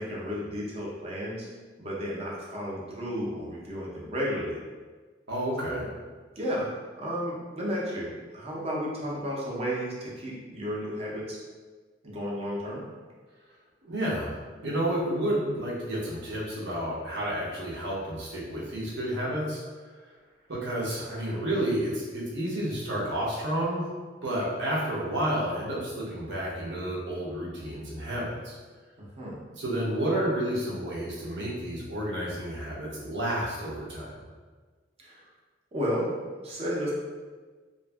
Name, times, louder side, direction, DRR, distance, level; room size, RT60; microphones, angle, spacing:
voice 1, 0.0-1.5 1.8-4.6 5.7-5.9 6.4-11.4 12.0-12.8 29.0-29.4 35.0-35.2 35.7-36.1 36.4-36.9, equal, 35° right, -4 dB, 0.6 m, -33 dB
voice 2, 5.3-5.9 13.8-14.3 14.6-19.6 20.5-23.8 24.2-28.6 29.6-34.1, right 1 dB, 75° right, -5 dB, 0.8 m, -30 dB
2.6 x 2.5 x 2.3 m, 1.4 s
head